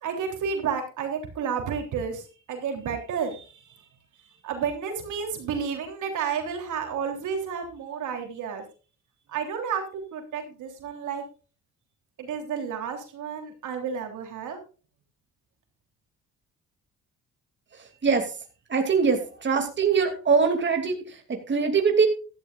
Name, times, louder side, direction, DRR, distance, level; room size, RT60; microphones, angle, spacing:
voice 1, 0.0-2.2 2.5-3.7 4.4-8.6 9.3-11.2 12.2-14.6, right 6 dB, 80° right, 4 dB, 3.4 m, -31 dB
voice 2, 17.7-18.3 18.7-22.1, right 5 dB, 40° right, 4 dB, 2.7 m, -23 dB
14.5 x 13.0 x 2.5 m, 0.35 s
cardioid pair, 90°, 30 cm